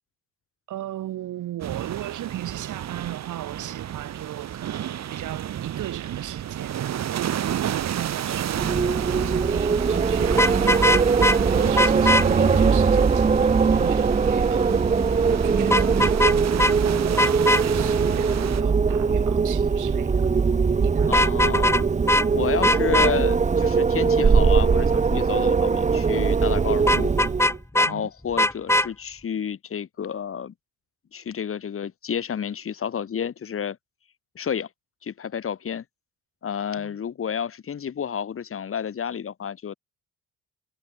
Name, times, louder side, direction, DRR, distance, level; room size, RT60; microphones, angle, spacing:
voice 1, 0.7-8.9 9.2-11.1 11.5-20.3 20.8-21.1 27.8-28.1 36.8-37.0, right 13 dB, 80° right, 4.9 m, -36 dB
sound 1, 1.6-18.6, right 10 dB, 60° right, 2.0 m, -31 dB
Wind, 8.5-27.6, right 5 dB, 25° right, 0.8 m, -21 dB
Vehicle horn car horn honking, 10.3-11.4 11.8-12.2 15.7-16.3 16.6-16.7 17.2-17.6 21.0-21.8 22.1-22.3 22.6-23.1 26.9-27.9 28.4-28.9, left 1 dB, 10° left, 2.8 m, -20 dB
voice 2, 21.1-21.9 22.3-27.1 27.7-30.5 31.1-33.8 34.4-34.7 35.0-35.8 36.4-39.8, left 7 dB, 45° left, 1.9 m, -30 dB
cardioid pair, 90°, 30 cm